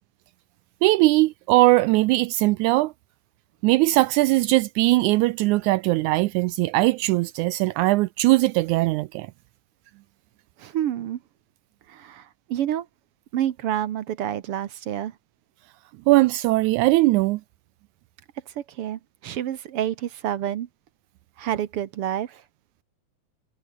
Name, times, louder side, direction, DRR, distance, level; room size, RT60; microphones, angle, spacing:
voice 1, 0.8-2.9 3.6-9.3 16.1-17.4, right 19 dB, 80° right, 1.9 m, -20 dB
voice 2, 10.6-11.2 11.9-12.9 13.3-15.1 18.7-20.7 21.4-22.4, right 11 dB, 60° right, 1.6 m, -28 dB
omnidirectional pair, 3.6 m